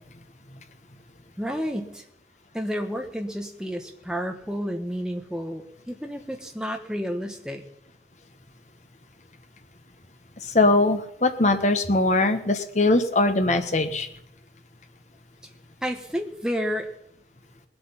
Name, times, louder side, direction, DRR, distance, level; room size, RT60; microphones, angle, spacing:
voice 1, 1.4-2.0 2.5-7.6 15.8-16.9, equal, 5° right, 3 dB, 1.3 m, -30 dB
voice 2, 10.4-14.1, left 2 dB, 40° left, 7 dB, 1.2 m, -21 dB
19.5 x 8.0 x 5.7 m, 0.74 s
head